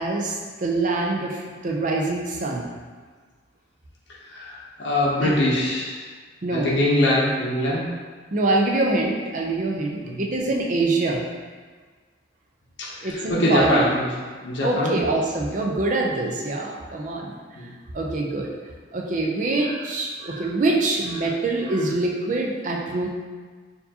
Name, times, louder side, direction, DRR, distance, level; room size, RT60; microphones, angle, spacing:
voice 1, 0.0-2.7 5.2-5.3 6.4-6.7 8.3-11.3 13.0-13.8 14.6-17.3 17.9-18.5 18.9-23.1, right 2 dB, 40° right, -1 dB, 0.5 m, -24 dB
voice 2, 4.2-6.1 6.5-7.9 10.0-10.2 12.8-14.1 14.4-15.0 17.5-17.7, left 1 dB, 65° left, -6 dB, 0.7 m, -23 dB
4.4 x 2.7 x 2.8 m, 1.5 s
head